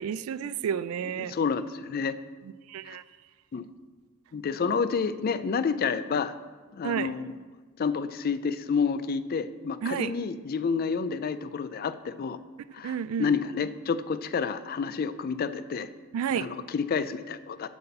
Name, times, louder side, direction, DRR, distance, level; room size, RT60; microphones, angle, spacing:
voice 1, 0.0-1.4 2.4-3.0 6.8-7.1 9.8-10.1 12.8-13.3 16.1-16.5, right 8 dB, 80° right, 16 dB, 0.3 m, -31 dB
voice 2, 1.2-2.2 2.8-3.0 3.5-3.7 4.3-6.4 6.7-7.3 7.8-12.4 12.7-15.9 16.3-17.7, left 5 dB, 45° left, 13 dB, 0.3 m, -29 dB
9.2 x 4.1 x 6.8 m, 1.4 s
head